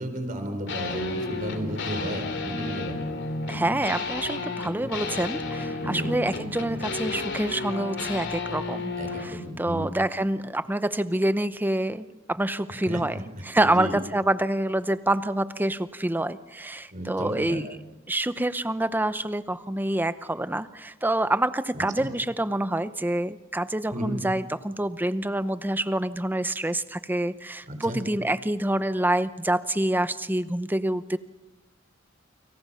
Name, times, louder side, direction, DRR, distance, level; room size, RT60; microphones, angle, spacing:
voice 1, 0.0-3.1 5.8-6.1 9.0-9.9 12.9-13.0 13.6-13.9 16.9-17.6 21.7-22.1 23.9-24.2 27.7-28.0, right 1 dB, 40° right, 6 dB, 4.5 m, -33 dB
sound 1, 0.7-9.4, left 3 dB, 60° left, 3.0 m, -32 dB
voice 2, 3.5-17.7 18.1-31.2, right 1 dB, 10° right, 13 dB, 0.7 m, -27 dB
29.5 x 25.5 x 5.7 m, 1.1 s
head